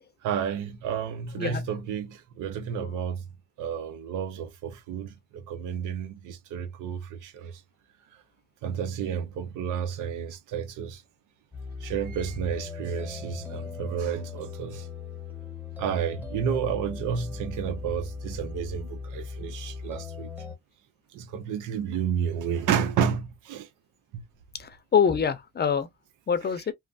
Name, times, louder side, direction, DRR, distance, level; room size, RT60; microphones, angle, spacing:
voice 1, 0.2-3.3 3.6-7.6 8.6-11.0 11.8-14.9 15.8-20.3 21.1-23.7 24.1-24.2, right 8 dB, 90° right, 0.7 m, -31 dB
sound 1, 11.5-20.6, left 5 dB, 5° right, 1.0 m, -38 dB
voice 2, 24.5-25.9 26.3-26.7, left 7 dB, 35° left, 0.6 m, -25 dB
3.1 x 2.1 x 2.4 m
cardioid pair, 90°, 30 cm